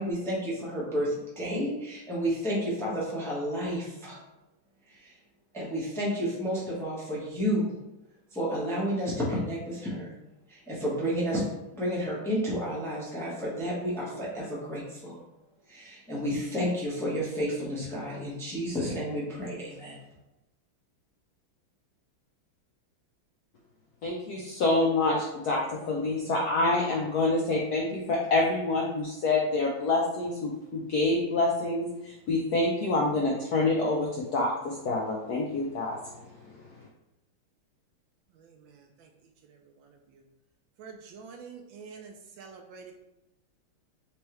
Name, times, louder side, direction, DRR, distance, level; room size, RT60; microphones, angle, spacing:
voice 1, 0.0-4.2 4.9-5.1 5.5-7.8 8.3-10.1 10.5-11.5 11.7-15.2 15.7-20.0, equal, 5° left, -6 dB, 0.5 m, -31 dB
voice 2, 24.0-36.0 36.5-36.6, left 2 dB, 75° left, -2 dB, 0.9 m, -27 dB
voice 3, 38.4-39.1 39.4-40.2 40.8-42.9, right 5 dB, 75° right, 3 dB, 1.2 m, -48 dB
4.5 x 3.1 x 3.0 m, 0.93 s
omnidirectional pair, 2.3 m